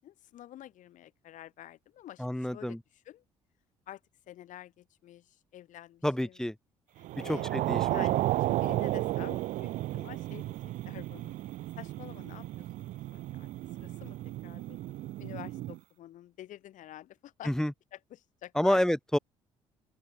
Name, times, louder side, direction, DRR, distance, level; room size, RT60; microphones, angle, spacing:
voice 1, 0.0-2.8 3.1-3.2 3.9-4.0 4.3-6.4 7.0-10.6 10.9-11.3 11.8-13.5 13.8-14.2 14.4-14.8 15.2-17.5 17.9-18.8, left 13 dB, 60° left, 6.9 m, -49 dB
voice 2, 2.2-2.8 6.0-6.5 7.2-8.1 17.4-17.7 18.5-19.2, left 1 dB, 5° left, 1.6 m, -29 dB
sound 1, 7.0-15.8, right 16 dB, 60° right, 0.8 m, -33 dB
open air
hypercardioid pair, 50°, 15 cm